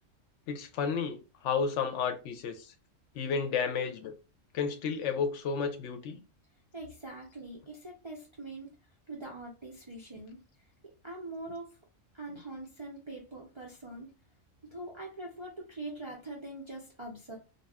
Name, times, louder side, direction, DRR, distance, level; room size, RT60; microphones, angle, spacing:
voice 1, 0.5-2.7 3.1-4.1 4.5-6.2 12.3-12.4, left 6 dB, 70° left, 0.8 m, -32 dB
voice 2, 6.7-8.7 9.1-10.4 11.0-11.8 12.1-14.1 14.7-17.4, right 2 dB, 45° right, 0.3 m, -43 dB
2.4 x 2.2 x 3.3 m
omnidirectional pair, 1.3 m